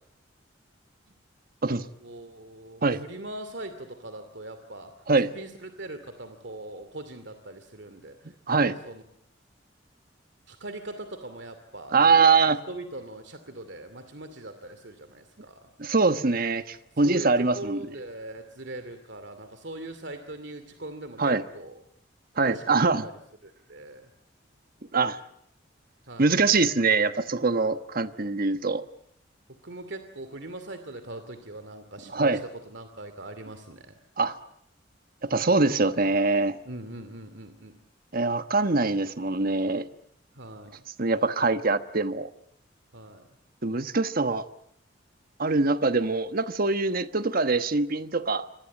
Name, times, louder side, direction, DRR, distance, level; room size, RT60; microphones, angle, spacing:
voice 1, 2.0-9.0 10.5-15.7 17.0-17.3 17.5-21.8 22.5-24.1 26.1-26.4 27.4-27.7 29.6-33.9 36.7-37.7 40.4-40.8 42.9-43.3, right 2 dB, 65° right, 9 dB, 2.6 m, -41 dB
voice 2, 11.9-12.6 15.8-17.8 21.2-21.4 22.4-23.0 24.9-25.2 26.2-28.8 32.1-32.4 34.2-34.4 35.2-36.6 38.1-39.9 41.0-42.3 43.6-44.4 45.4-48.5, right 3 dB, 50° right, 10 dB, 1.2 m, -23 dB
27.5 x 25.0 x 8.5 m, 0.72 s
head